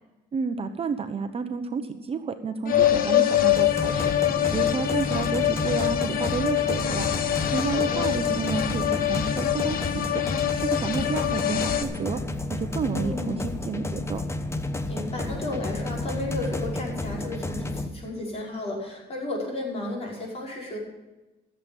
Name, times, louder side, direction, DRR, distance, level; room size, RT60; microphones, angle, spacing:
voice 1, 0.3-4.1 4.5-7.1 7.5-10.2 10.5-12.2 12.5-14.2, right 5 dB, 35° right, 7 dB, 0.9 m, -30 dB
sound 1, 2.6-11.8, left 12 dB, 60° left, 1.0 m, -25 dB
sound 2, 3.5-17.9, left 2 dB, 15° left, 0.9 m, -31 dB
voice 2, 7.6-8.1 12.9-13.4 14.9-20.8, left 2 dB, 35° left, -3 dB, 5.4 m, -33 dB
15.0 x 7.7 x 7.1 m, 1.1 s
cardioid pair, 110°, 17 cm